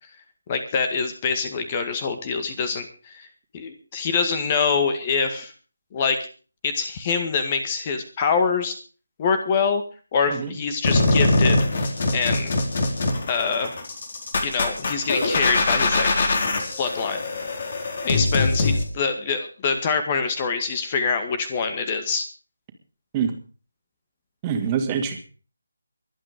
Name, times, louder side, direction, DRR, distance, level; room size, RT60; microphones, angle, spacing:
voice 1, 0.5-3.3 3.5-5.5 5.9-6.2 6.6-8.7 9.2-9.8 10.1-11.7 12.1-12.5 13.2-13.7 14.4-16.1 16.8-17.2 18.0-22.3, left 5 dB, 25° left, 9 dB, 1.9 m, -25 dB
sound 1, 10.8-18.8, left 2 dB, 45° left, 4.1 m, -22 dB
voice 2, 24.4-25.2, right 7 dB, 20° right, 4 dB, 2.5 m, -25 dB
23.0 x 9.1 x 5.1 m, 0.39 s
figure-of-eight pair, 155°, 0 cm